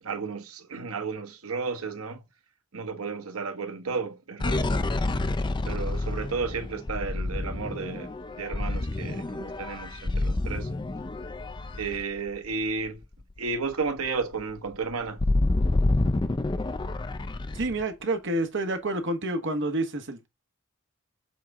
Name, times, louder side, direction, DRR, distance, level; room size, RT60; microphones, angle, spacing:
voice 1, 0.0-2.3 2.7-4.9 5.6-10.7 11.8-13.0 13.4-15.2, right 4 dB, 80° right, 1.1 m, -33 dB
sound 1, 4.4-12.8 13.2-13.4 13.6-17.8, left 2 dB, 20° left, 0.4 m, -28 dB
voice 2, 17.5-20.3, right 2 dB, 60° right, 1.3 m, -28 dB
7.6 x 4.0 x 3.6 m
head